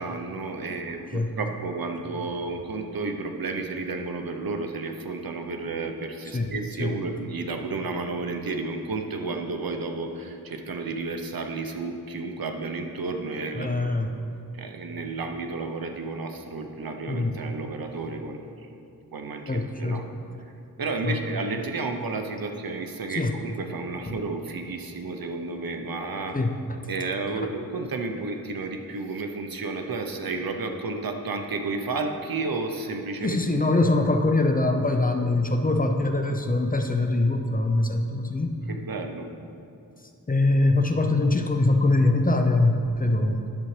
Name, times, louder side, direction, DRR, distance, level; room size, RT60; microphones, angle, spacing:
voice 1, 0.0-13.9 14.5-18.7 19.1-20.1 20.8-26.4 26.9-33.4 38.7-39.3, right 3 dB, 70° right, 5 dB, 0.8 m, -32 dB
voice 2, 13.6-14.1 17.1-17.3 19.5-20.0 21.0-21.2 23.2-23.4 24.1-24.2 26.3-26.6 27.4-27.5 33.2-38.5 40.3-43.4, left 2 dB, 25° left, 5 dB, 0.6 m, -23 dB
10.5 x 7.1 x 3.3 m, 2.6 s
wide cardioid pair, 65°, 37 cm